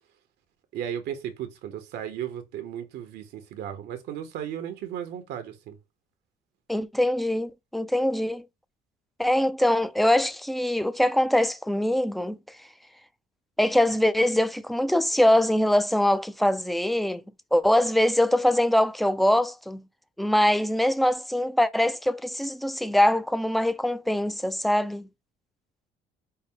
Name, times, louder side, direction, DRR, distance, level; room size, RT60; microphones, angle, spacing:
voice 1, 0.7-5.8, right 9 dB, 80° right, 0.9 m, -35 dB
voice 2, 6.7-8.4 9.2-12.6 13.6-17.2 17.5-19.8 20.2-25.1, left 1 dB, ahead, 0.3 m, -23 dB
5.4 x 2.1 x 3.6 m
cardioid pair, 110°, 17 cm